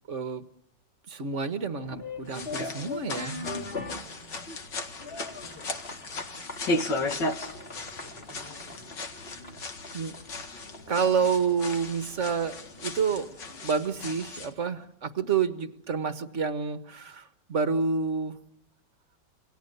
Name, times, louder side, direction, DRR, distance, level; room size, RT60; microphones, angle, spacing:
voice 1, 0.1-0.4 1.1-3.5 3.9-4.0 9.9-10.2 10.9-13.3 13.6-18.4, right 5 dB, 45° right, 9 dB, 1.6 m, -29 dB
sound 1, 1.8-14.5, left 3 dB, 35° left, 3.2 m, -43 dB
sound 2, 2.3-14.5, left 2 dB, 80° left, 2.6 m, -36 dB
voice 2, 4.0-4.5 5.3-6.5 7.7-8.9, right 1 dB, 15° right, 5 dB, 5.5 m, -55 dB
28.5 x 26.0 x 6.8 m, 0.87 s
omnidirectional pair, 1.9 m